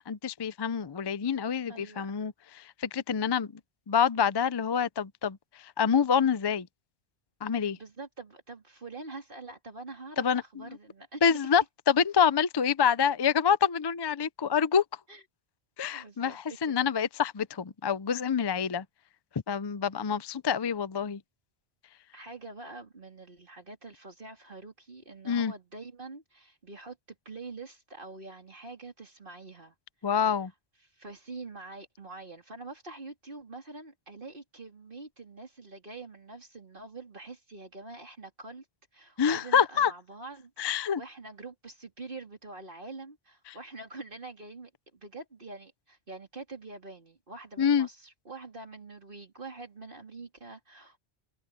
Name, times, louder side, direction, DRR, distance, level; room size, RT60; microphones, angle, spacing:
voice 1, 0.0-2.3 2.8-3.5 3.9-5.4 5.8-6.7 7.4-7.8 10.2-10.4 11.2-14.8 15.8-18.8 19.5-21.2 25.3-25.5 30.0-30.5 39.2-39.9 40.6-41.0 47.6-47.9, left 7 dB, 35° left, 0.4 m, -26 dB
voice 2, 1.7-2.1 7.5-11.4 15.1-15.2 15.9-16.9 22.1-29.7 30.8-38.6 38.9-51.0, right 3 dB, 55° right, 3.5 m, -45 dB
omnidirectional pair, 1.1 m